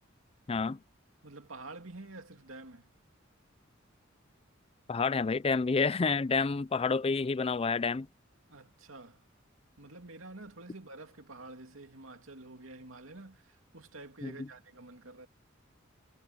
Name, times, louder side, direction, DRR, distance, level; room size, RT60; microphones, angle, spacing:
voice 1, 0.5-0.8 4.9-8.1 14.2-14.5, left 4 dB, 30° left, 0.4 m, -29 dB
voice 2, 1.2-2.9 8.5-9.2 9.8-15.3, right 2 dB, 85° right, 2.5 m, -48 dB
head